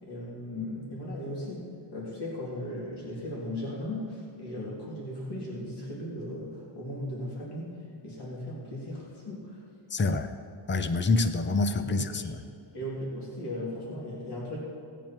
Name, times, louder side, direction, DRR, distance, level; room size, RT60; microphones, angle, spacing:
voice 1, 0.0-1.6 1.9-9.6 11.8-12.3 12.7-14.6, left 1 dB, 60° left, -5 dB, 3.0 m, -37 dB
voice 2, 9.9-10.3 10.7-12.3, left 3 dB, 25° left, 9 dB, 0.6 m, -26 dB
17.5 x 9.0 x 4.5 m, 2.5 s
wide cardioid pair, 175°, 45 cm